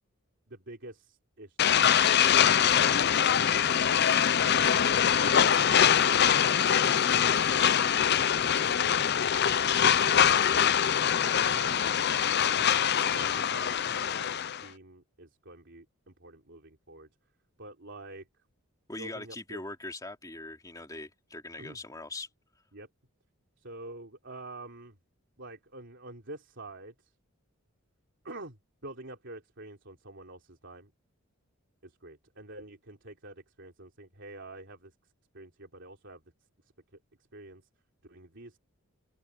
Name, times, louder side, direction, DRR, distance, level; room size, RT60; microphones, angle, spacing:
voice 1, 0.5-2.2 2.5-4.1 4.3-5.5 5.9-6.3 6.6-9.1 9.8-10.7 11.4-11.9 12.5-17.1 17.6-18.3 19.0-19.6 21.6-21.8 22.7-22.9 23.6-25.0 25.4-27.1 28.2-28.6 28.8-30.9 31.8-36.2 37.3-37.7 38.0-38.6, right 2 dB, 55° right, 3.5 m, -47 dB
sound 1, 1.6-14.6, left 8 dB, 45° left, 0.6 m, -24 dB
voice 2, 18.9-22.3, left 2 dB, 15° left, 2.9 m, -41 dB
open air
head